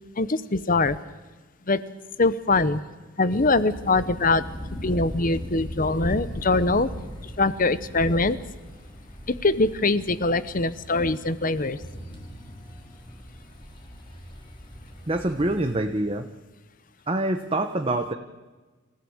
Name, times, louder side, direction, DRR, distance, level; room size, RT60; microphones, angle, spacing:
voice 1, 0.2-1.0 1.7-1.8 2.2-2.8 3.2-4.4 4.8-6.9 7.4-8.4 9.3-11.8, left 3 dB, 40° left, 15 dB, 0.9 m, -23 dB
sound 1, 3.3-15.8, equal, 25° left, 3.3 m, -39 dB
voice 2, 15.1-16.3 17.1-18.1, right 1 dB, 25° right, 5 dB, 1.0 m, -25 dB
28.0 x 15.5 x 8.0 m, 1.3 s
head